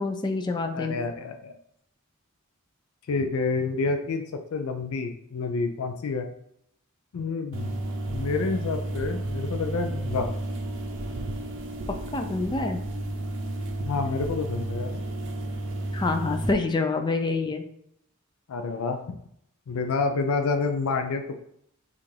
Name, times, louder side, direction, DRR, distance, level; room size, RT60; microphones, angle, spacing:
voice 1, 0.0-1.0 12.1-12.8 15.9-17.6, left 3 dB, 20° left, 5 dB, 0.4 m, -26 dB
voice 2, 0.7-1.5 3.1-4.2 4.5-6.3 7.1-7.7 8.1-10.3 13.8-15.0 18.5-19.1 19.7-21.4, left 4 dB, 85° left, 5 dB, 0.4 m, -28 dB
sound 1, 7.5-16.5, right 1 dB, 60° right, 0.6 m, -32 dB
5.6 x 2.5 x 3.3 m, 0.72 s
head